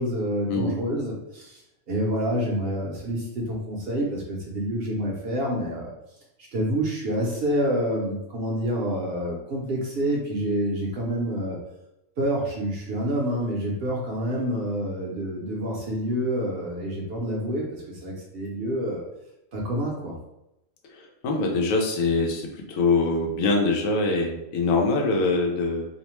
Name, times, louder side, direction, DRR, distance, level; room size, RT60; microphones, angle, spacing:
voice 1, 0.0-1.6 1.9-5.9 6.5-11.6 12.2-19.0 19.5-20.1, equal, 60° right, -3 dB, 0.7 m, -27 dB
voice 2, 21.2-25.9, left 3 dB, 90° left, 0 dB, 1.0 m, -23 dB
2.6 x 2.1 x 2.9 m, 0.87 s
omnidirectional pair, 1.3 m